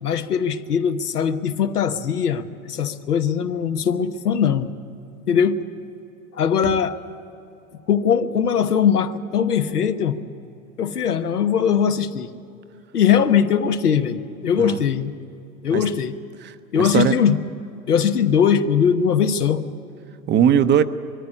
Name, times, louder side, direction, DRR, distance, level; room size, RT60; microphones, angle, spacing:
voice 1, 0.0-4.7 5.3-5.6 6.3-7.0 7.9-10.2 10.8-12.3 12.9-15.1 15.6-16.1 16.7-17.4 17.9-19.6, left 7 dB, 85° left, 8 dB, 1.2 m, -20 dB
voice 2, 16.4-17.2 20.3-20.8, right 9 dB, 25° right, 11 dB, 0.7 m, -20 dB
22.0 x 14.0 x 10.0 m, 2.8 s
hypercardioid pair, 100°, 45 cm